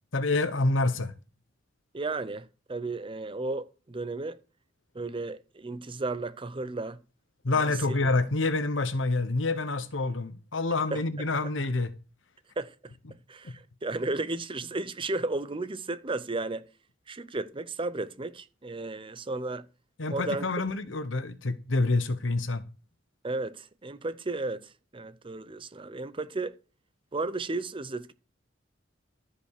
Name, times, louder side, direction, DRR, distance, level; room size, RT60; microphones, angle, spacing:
voice 1, 0.1-1.1 7.4-11.9 13.4-13.5 20.0-22.6, left 2 dB, 80° left, 1.1 m, -27 dB
voice 2, 1.9-4.4 4.9-7.0 7.5-7.6 10.9-11.0 12.6-12.9 13.3-16.7 17.1-19.6 20.1-20.5 23.2-26.5 27.1-28.1, right 3 dB, 25° right, 0.7 m, -34 dB
13.5 x 5.3 x 6.6 m
head